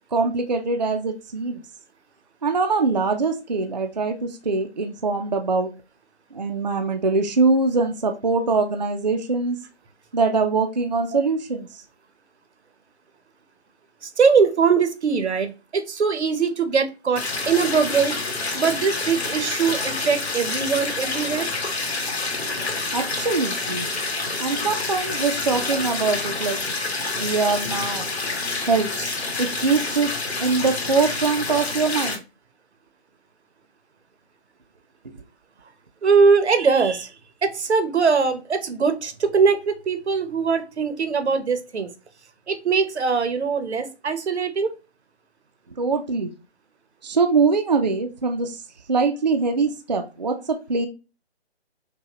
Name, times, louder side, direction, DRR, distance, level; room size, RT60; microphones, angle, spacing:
voice 1, 0.1-1.6 2.4-5.7 6.3-9.6 10.1-11.8 22.9-23.9 24.4-26.8 27.2-28.1 28.7-30.1 30.4-32.2 35.0-35.2 45.8-46.3 47.0-48.6 48.9-50.9, right 4 dB, 40° right, 5 dB, 0.4 m, -23 dB
voice 2, 14.0-18.1 18.5-21.5 36.0-37.1 37.4-41.9 42.5-44.8, right 5 dB, 85° right, 10 dB, 0.9 m, -21 dB
sound 1, 17.2-32.1, left 3 dB, 75° left, 1.7 m, -28 dB
5.6 x 2.2 x 2.9 m, 0.31 s
hypercardioid pair, 175°, 33 cm